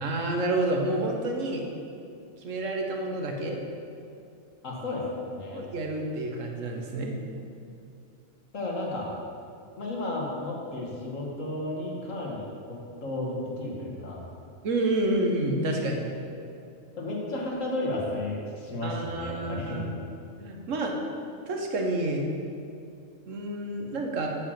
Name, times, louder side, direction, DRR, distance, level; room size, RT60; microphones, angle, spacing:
voice 1, 0.0-1.6 2.4-3.6 5.5-7.2 14.6-16.0 18.8-19.9 20.4-21.0 21.5-22.3 23.3-24.3, right 2 dB, 65° right, 1 dB, 1.4 m, -29 dB
voice 2, 4.6-5.6 8.5-9.1 9.8-14.2 17.0-19.9, left 2 dB, 70° left, -2 dB, 1.8 m, -33 dB
7.9 x 4.9 x 7.3 m, 2.5 s
omnidirectional pair, 1.4 m